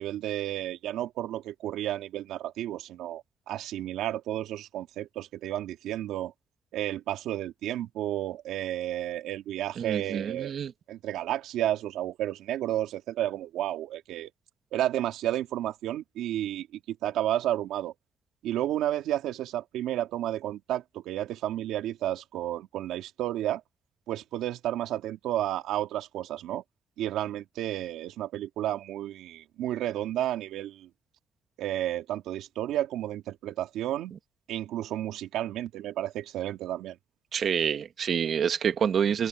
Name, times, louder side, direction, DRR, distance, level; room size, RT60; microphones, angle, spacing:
voice 1, 0.0-6.3 6.7-10.6 10.9-14.3 14.7-17.9 18.4-23.6 24.1-26.6 27.0-30.9 31.6-34.1 34.5-37.0, right 13 dB, 85° right, 2.5 m, -32 dB
voice 2, 9.8-10.7 37.3-39.3, right 7 dB, 60° right, 1.9 m, -27 dB
cardioid pair, 90°, 0 cm